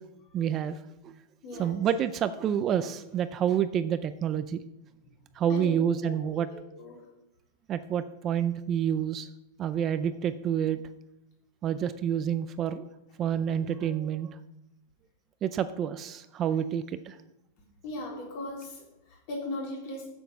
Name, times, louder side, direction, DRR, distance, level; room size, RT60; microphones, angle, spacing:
voice 1, 0.3-0.8 1.0-1.1 1.5-4.6 5.4-6.5 7.7-9.3 9.6-10.8 11.6-12.9 13.2-14.4 15.4-17.2, right 9 dB, 25° right, 12 dB, 0.4 m, -28 dB
voice 2, 1.4-1.8 5.5-7.0 17.8-20.1, left 1 dB, 50° left, -2 dB, 3.9 m, -38 dB
7.6 x 7.1 x 7.1 m, 0.92 s
supercardioid pair, 160°, 0 cm